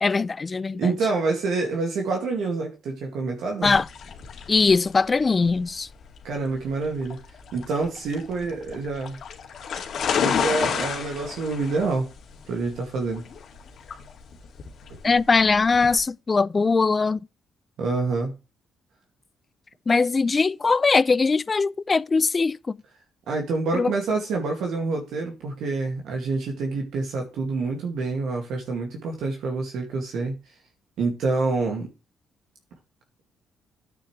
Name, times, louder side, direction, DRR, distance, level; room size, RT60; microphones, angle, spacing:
voice 1, 0.0-0.9 3.6-3.9 4.5-5.9 15.0-17.2 19.9-22.8 23.7-23.9, left 4 dB, 30° left, 0.4 m, -21 dB
voice 2, 0.8-3.7 6.2-7.2 7.5-9.2 10.1-12.1 12.5-13.2 17.8-18.3 23.3-30.3 31.0-31.9, right 3 dB, 75° right, 2.1 m, -27 dB
sound 1, 3.6-16.0, left 7 dB, 60° left, 2.2 m, -31 dB
9.8 x 8.5 x 3.2 m
cardioid pair, 90°, 0 cm